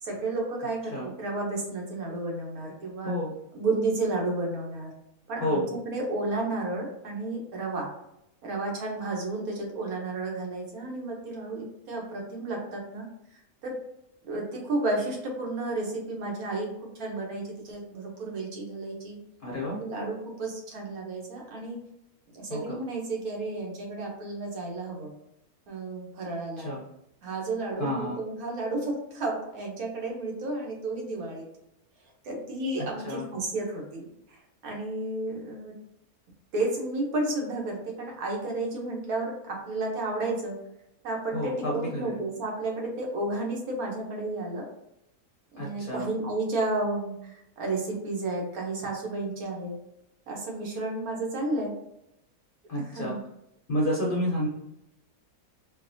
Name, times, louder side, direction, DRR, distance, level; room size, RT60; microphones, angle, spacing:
voice 1, 0.0-3.1 3.5-4.9 5.3-7.9 8.4-13.1 13.6-13.8 14.2-16.7 16.9-19.2 19.8-21.8 22.3-25.1 25.7-26.7 27.2-31.5 32.2-35.7 36.5-40.6 41.0-44.6 45.5-49.7 50.3-51.7 52.8-53.2, right 2 dB, 75° right, 0 dB, 1.3 m, -32 dB
voice 2, 5.4-5.8 19.4-19.8 22.5-22.8 26.6-26.8 27.8-28.2 33.0-33.2 41.3-42.2 45.6-46.1 52.7-53.1 53.7-54.5, left 1 dB, 50° left, -3 dB, 0.6 m, -30 dB
4.4 x 2.2 x 2.6 m, 0.82 s
omnidirectional pair, 1.6 m